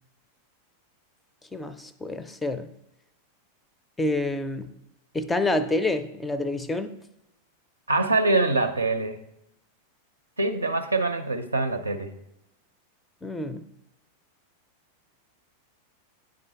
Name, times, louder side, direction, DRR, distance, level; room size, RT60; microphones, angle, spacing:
voice 1, 1.5-2.7 4.0-4.7 5.1-6.9 13.2-13.7, left 2 dB, 10° left, 12 dB, 0.4 m, -28 dB
voice 2, 7.9-9.2 10.4-12.1, right 2 dB, 80° right, 7 dB, 0.5 m, -24 dB
9.7 x 3.8 x 3.2 m, 0.86 s
figure-of-eight pair, 90°, 0 cm